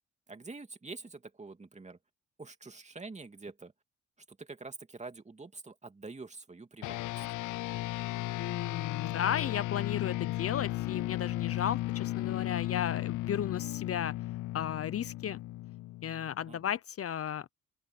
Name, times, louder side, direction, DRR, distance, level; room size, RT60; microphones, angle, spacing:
voice 1, 0.3-2.0 2.4-3.7 4.3-7.3 16.5-16.7, right 3 dB, 25° right, 2.6 m, -46 dB
sound 1, 6.8-16.5, left 17 dB, 80° left, 0.6 m, -35 dB
voice 2, 8.4-14.1 14.5-15.4 16.0-17.5, left 9 dB, 50° left, 0.8 m, -34 dB
open air
cardioid pair, 90°, 30 cm